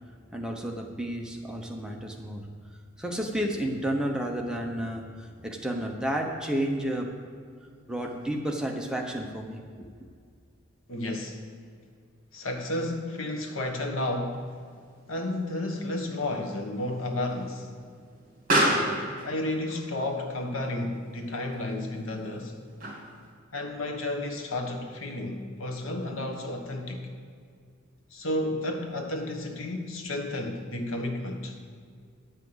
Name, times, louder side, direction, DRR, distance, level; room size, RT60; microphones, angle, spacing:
voice 1, 0.3-2.5 3.0-7.1 7.9-9.9, right 1 dB, 5° right, 1 dB, 0.8 m, -31 dB
voice 2, 10.9-11.4 12.3-14.6 15.1-17.7 18.5-22.6 23.5-27.1 28.1-31.6, left 1 dB, 75° left, 3 dB, 1.2 m, -32 dB
Explosion, 14.3-23.3, right 1 dB, 40° right, 2.7 m, -33 dB
10.5 x 5.7 x 7.9 m, 2.1 s
head